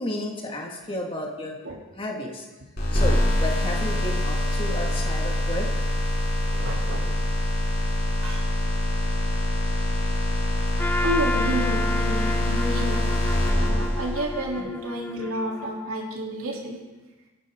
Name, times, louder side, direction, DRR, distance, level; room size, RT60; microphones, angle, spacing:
voice 1, 0.0-1.5 2.0-2.5 2.9-5.7 14.6-14.7, left 1 dB, 25° left, 0 dB, 2.2 m, -32 dB
sound 1, 2.8-14.4, left 1 dB, 45° left, 6.9 m, -24 dB
voice 2, 6.5-7.1 8.2-8.5 11.0-13.1 13.5-16.8, equal, 80° right, -2 dB, 3.5 m, -30 dB
Trumpet, 10.8-15.9, left 2 dB, 10° left, 0.4 m, -32 dB
26.0 x 11.0 x 3.9 m, 1.2 s
head